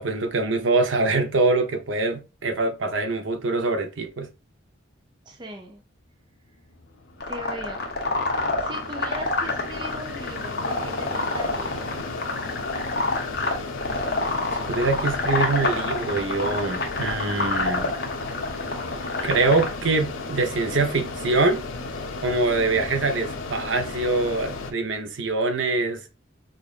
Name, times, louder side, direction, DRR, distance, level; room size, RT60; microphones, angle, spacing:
voice 1, 0.0-4.3 14.7-17.9 19.2-21.6 22.2-26.0, right 3 dB, 70° right, 0.7 m, -24 dB
voice 2, 5.3-5.8 7.3-7.9 8.3-11.9, right 1 dB, 25° right, 0.5 m, -39 dB
Mechanisms, 6.7-24.7, left 3 dB, 85° left, 0.6 m, -34 dB
sound 1, 7.2-19.7, left 3 dB, 50° left, 0.9 m, -27 dB
5.2 x 2.5 x 2.4 m
head